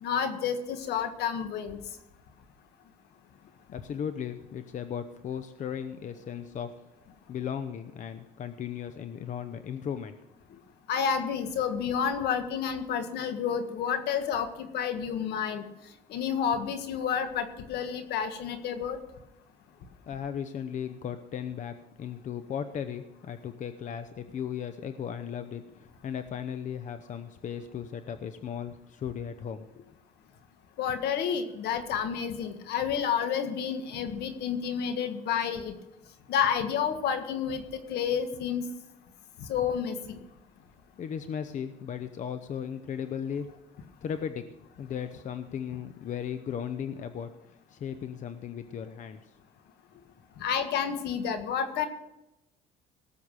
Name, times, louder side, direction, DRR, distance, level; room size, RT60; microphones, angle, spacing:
voice 1, 0.0-1.8 10.9-15.6 16.1-19.0 30.8-35.7 36.3-38.7 39.4-40.2 50.4-51.9, left 7 dB, 75° left, 8 dB, 1.6 m, -30 dB
voice 2, 3.7-6.7 7.3-10.2 10.5-10.6 20.1-29.9 41.0-43.5 44.0-44.5 44.8-47.3 47.7-49.3 49.9-50.1, left 8 dB, 50° left, 10 dB, 0.8 m, -36 dB
18.0 x 7.2 x 6.4 m, 0.91 s
cardioid pair, 110°, 17 cm